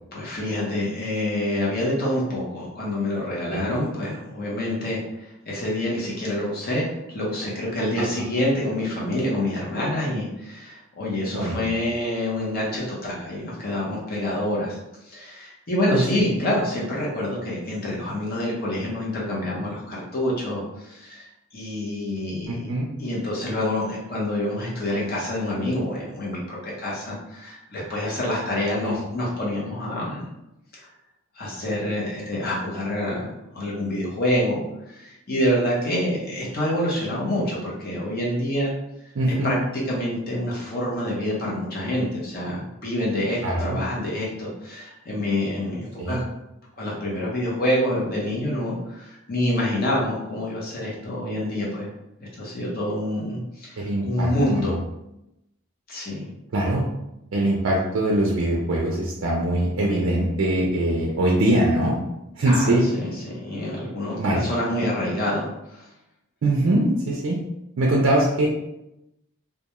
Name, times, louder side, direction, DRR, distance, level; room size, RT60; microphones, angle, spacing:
voice 1, 0.1-14.8 15.0-22.7 23.0-30.3 30.7-30.9 31.4-34.6 34.9-38.7 39.3-46.2 46.8-51.9 52.2-54.7 55.9-56.3 62.4-65.9, left 1 dB, 45° left, -5 dB, 0.8 m, -27 dB
voice 2, 15.9-16.3 22.5-22.9 28.8-28.9 39.2-39.5 43.4-43.8 46.0-46.2 53.8-54.3 54.6-54.8 56.5-56.8 57.3-62.0 62.4-62.9 64.2-64.4 66.4-67.4 67.8-68.5, right 1 dB, 60° right, -3 dB, 0.4 m, -22 dB
2.2 x 2.2 x 2.9 m, 0.88 s
head